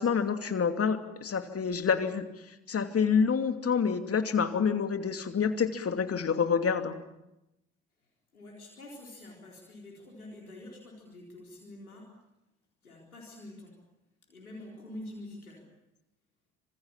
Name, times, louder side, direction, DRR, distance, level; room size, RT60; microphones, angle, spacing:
voice 1, 0.0-2.2 2.7-6.9, left 6 dB, 35° left, 8 dB, 2.7 m, -27 dB
voice 2, 8.3-12.1 12.8-13.8 14.3-15.7, left 1 dB, 85° left, -2 dB, 4.3 m, -46 dB
26.0 x 26.0 x 7.4 m, 0.91 s
figure-of-eight pair, 50°, 42 cm